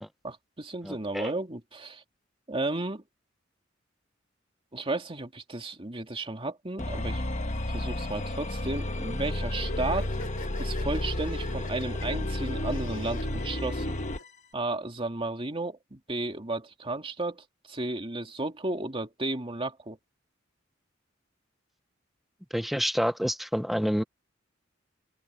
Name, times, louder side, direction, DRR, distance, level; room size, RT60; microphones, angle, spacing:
voice 1, 0.2-2.0 2.5-3.0 4.7-7.2 7.7-10.1 10.6-14.0 14.5-20.0, right 2 dB, 30° right, 2.5 m, -33 dB
voice 2, 0.8-1.3 22.5-24.0, equal, ahead, 0.5 m, -28 dB
sound 1, 6.8-14.3, left 1 dB, 40° left, 1.4 m, -32 dB
sound 2, 9.6-14.2, left 1 dB, 70° left, 2.7 m, -44 dB
open air
head